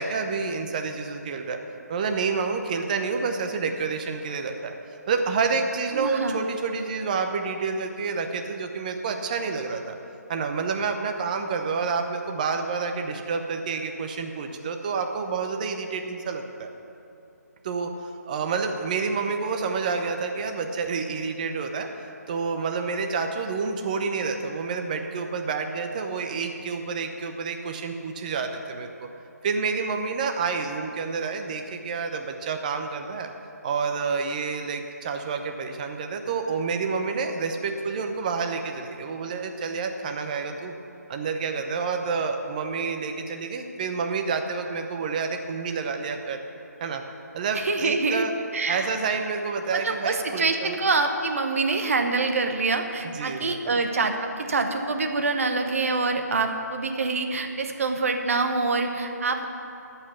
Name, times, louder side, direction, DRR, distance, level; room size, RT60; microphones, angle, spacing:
voice 1, 0.0-1.6 1.9-4.7 5.1-10.0 10.3-16.7 17.6-17.9 18.3-29.1 29.4-33.3 33.6-40.7 41.1-46.4 46.8-47.0 47.3-48.3 48.7-50.7 53.0-53.8, right 5 dB, 25° right, 5 dB, 0.8 m, -29 dB
voice 2, 5.9-6.4 47.5-48.9 49.7-59.5, right 3 dB, 50° right, 5 dB, 1.1 m, -26 dB
13.5 x 5.8 x 8.3 m, 2.8 s
figure-of-eight pair, 150°, 9 cm